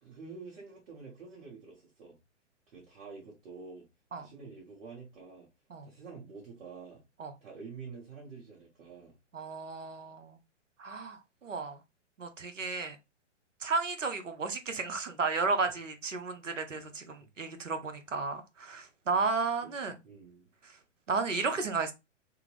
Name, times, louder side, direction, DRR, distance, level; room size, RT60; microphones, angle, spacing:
voice 1, 0.0-2.2 2.7-3.9 4.2-5.5 5.8-7.0 7.4-9.2 17.2-17.3 19.8-20.5, right 5 dB, 55° right, 1.4 m, -48 dB
voice 2, 9.3-10.4 10.8-11.8 12.2-13.0 13.6-20.0 20.6-20.8 21.1-21.9, right 4 dB, 90° right, 0.7 m, -33 dB
3.5 x 2.0 x 3.0 m
figure-of-eight pair, 115°, 36 cm